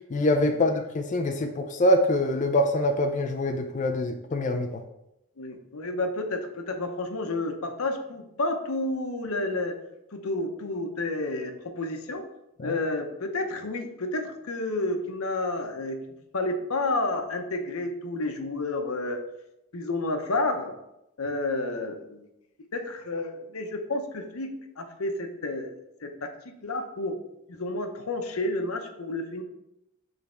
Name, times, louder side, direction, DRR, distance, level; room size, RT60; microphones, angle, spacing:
voice 1, 0.1-4.8 12.6-12.8, left 1 dB, 35° left, 5 dB, 0.4 m, -24 dB
voice 2, 5.4-9.7 10.1-12.2 12.6-16.0 16.3-19.2 19.7-20.7 21.2-22.2 22.7-25.7 26.0-27.2 27.5-29.4, left 2 dB, 85° left, 6 dB, 0.8 m, -30 dB
6.6 x 3.5 x 4.2 m, 0.87 s
head